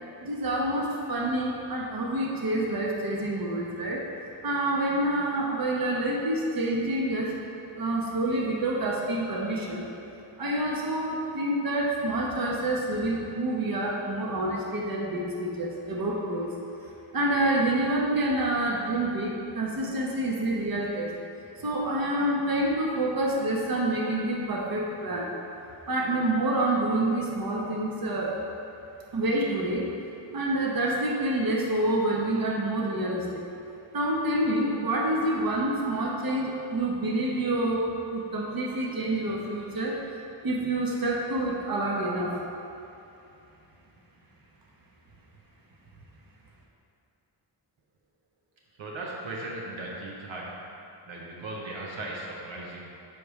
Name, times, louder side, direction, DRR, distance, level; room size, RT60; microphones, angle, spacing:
voice 1, 0.2-4.0 4.4-7.4 7.7-9.8 10.4-16.5 17.1-21.1 21.6-25.3 25.9-28.4 29.1-29.9 30.3-33.4 33.9-40.0 40.4-42.4, right 1 dB, 50° right, -2 dB, 1.2 m, -27 dB
voice 2, 48.8-50.6 51.1-52.9, right 2 dB, 80° right, -3 dB, 1.0 m, -37 dB
7.7 x 5.1 x 3.2 m, 2.7 s
cardioid pair, 65°, 45 cm